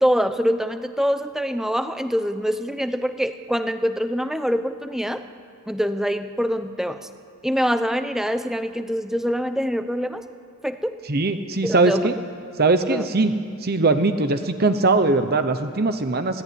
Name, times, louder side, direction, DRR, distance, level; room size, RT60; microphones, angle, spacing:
voice 1, 0.0-5.2 5.7-7.0 7.4-10.3 10.6-10.9 11.6-12.1 12.8-13.1, equal, ahead, 10 dB, 0.8 m, -24 dB
voice 2, 11.1-12.1 12.6-13.3 13.6-16.4, right 3 dB, 45° right, 9 dB, 0.9 m, -20 dB
26.0 x 17.0 x 9.6 m, 2.3 s
head